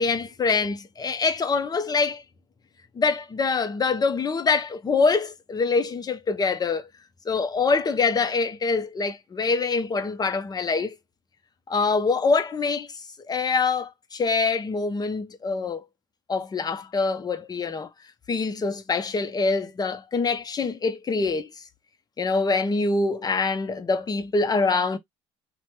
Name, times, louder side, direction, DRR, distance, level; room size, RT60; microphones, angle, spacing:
voice 1, 0.0-2.2 3.0-6.9 7.3-10.9 11.7-12.9 13.3-15.8 16.3-17.9 18.3-21.5 22.2-25.0, left 4 dB, 30° left, 0.7 m, -24 dB
2.9 x 2.2 x 3.2 m
hypercardioid pair, 65°, 14 cm